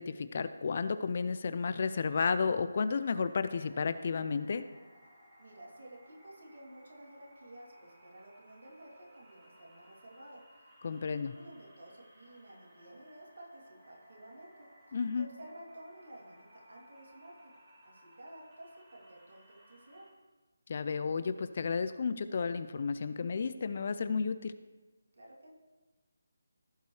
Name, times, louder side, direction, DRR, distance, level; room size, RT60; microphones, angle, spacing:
voice 1, 0.0-4.6 10.8-11.3 14.9-15.3 20.7-24.5, left 5 dB, 45° left, 12 dB, 0.4 m, -32 dB
sound 1, 1.3-20.1, equal, 30° right, 2.4 m, -61 dB
voice 2, 5.4-17.5 17.8-20.1 25.2-25.5, right 1 dB, 65° right, -3 dB, 2.8 m, -53 dB
15.5 x 5.3 x 3.2 m, 1.2 s
figure-of-eight pair, 155°, 0 cm